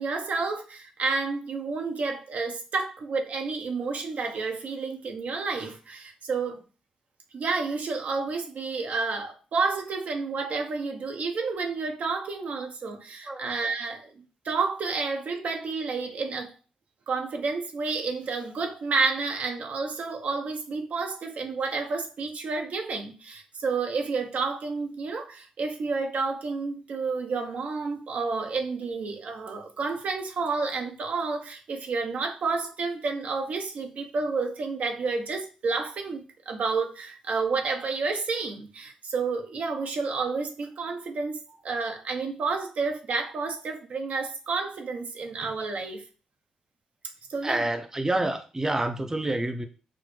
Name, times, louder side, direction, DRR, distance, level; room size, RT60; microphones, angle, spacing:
voice 1, 0.0-6.6 7.3-14.1 14.4-16.5 17.1-46.0 47.3-47.6, right 4 dB, 65° right, 3 dB, 0.6 m, -30 dB
voice 2, 47.4-49.6, right 2 dB, 20° right, 6 dB, 0.6 m, -28 dB
4.2 x 2.1 x 3.1 m, 0.35 s
supercardioid pair, 40°, 3 cm